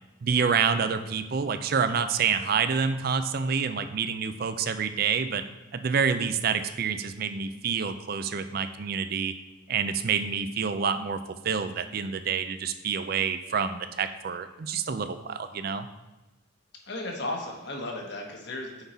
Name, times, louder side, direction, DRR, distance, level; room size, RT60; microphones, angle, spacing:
voice 1, 0.2-5.4 5.7-9.3 9.7-15.9, right 6 dB, 50° right, 10 dB, 0.4 m, -28 dB
voice 2, 16.9-18.8, left 2 dB, 60° left, 1 dB, 1.1 m, -35 dB
5.9 x 5.4 x 4.2 m, 1.1 s
head